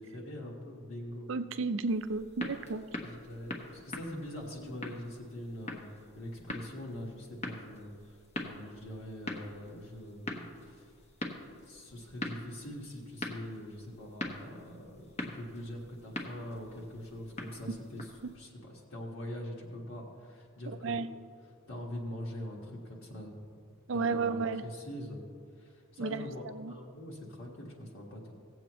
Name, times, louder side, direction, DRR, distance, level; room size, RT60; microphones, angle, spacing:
voice 1, 0.0-1.3 3.0-5.8 6.1-10.9 11.6-21.1 21.7-23.5 23.9-25.2 25.6-28.2, left 1 dB, 60° left, -3 dB, 1.5 m, -43 dB
voice 2, 1.3-2.8 20.8-21.1 23.9-24.6 26.0-26.7, right 4 dB, 55° right, 11 dB, 0.4 m, -32 dB
sound 1, 1.9-18.3, left 1 dB, 30° left, 0.9 m, -43 dB
17.5 x 7.8 x 3.0 m, 2.2 s
head